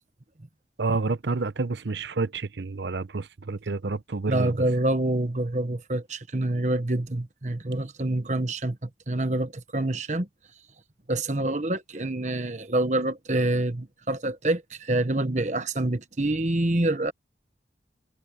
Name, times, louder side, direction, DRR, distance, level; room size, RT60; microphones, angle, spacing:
voice 1, 0.8-4.5, right 3 dB, 75° right, 0.8 m, -29 dB
voice 2, 4.3-10.3 11.1-17.1, right 1 dB, 40° right, 1.2 m, -26 dB
head